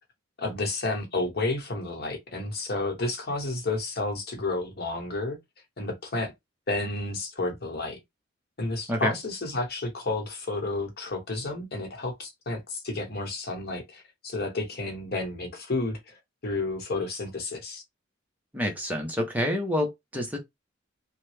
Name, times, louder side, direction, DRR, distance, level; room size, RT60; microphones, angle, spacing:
voice 1, 0.4-5.4 5.8-6.3 6.7-8.0 8.6-16.2 16.4-17.8, left 2 dB, 55° left, 1.0 m, -31 dB
voice 2, 18.5-20.4, left 1 dB, 10° right, 0.7 m, -28 dB
3.1 x 2.2 x 3.2 m
head